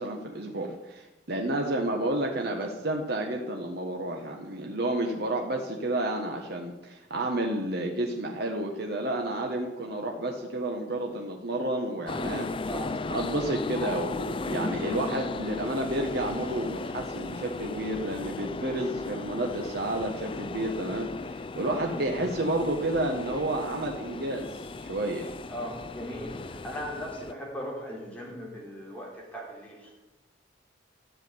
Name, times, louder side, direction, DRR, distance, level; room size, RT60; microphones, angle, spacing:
voice 1, 0.0-12.5 13.1-25.3, right 1 dB, 55° right, 1 dB, 1.5 m, -31 dB
sound 1, 12.1-27.3, left 3 dB, 30° left, 0.4 m, -36 dB
voice 2, 12.6-12.9 21.9-22.3 25.2-30.0, equal, 10° left, -3 dB, 4.5 m, -39 dB
14.0 x 7.6 x 9.7 m, 1.0 s
head